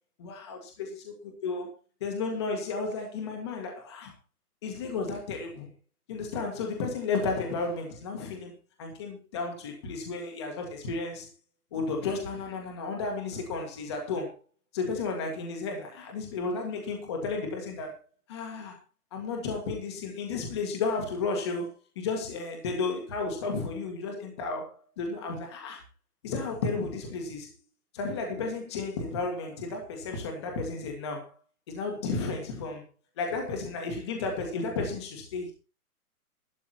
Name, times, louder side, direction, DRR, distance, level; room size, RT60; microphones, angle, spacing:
voice 1, 0.2-0.7 1.4-1.7 2.0-4.1 4.6-5.7 6.1-8.5 8.8-11.3 11.7-14.4 14.7-17.9 18.3-18.8 19.1-25.8 26.2-27.5 27.9-31.3 31.7-32.8 33.2-35.5, left 4 dB, 20° left, 1.8 m, -33 dB
12.5 x 11.5 x 4.4 m
hypercardioid pair, 175°, 45 cm